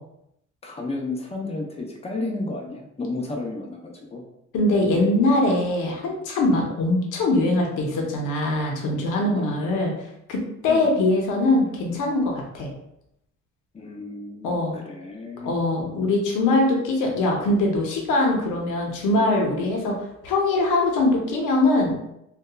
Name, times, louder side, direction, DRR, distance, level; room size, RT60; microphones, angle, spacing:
voice 1, 0.6-4.2 9.3-9.7 10.7-11.0 13.7-15.6, left 2 dB, 20° left, 0 dB, 0.6 m, -32 dB
voice 2, 4.5-9.9 10.3-12.7 14.4-14.8 15.4-21.9, left 2 dB, 90° left, 0 dB, 0.7 m, -22 dB
2.7 x 2.2 x 2.3 m, 0.79 s
cardioid pair, 90°, 30 cm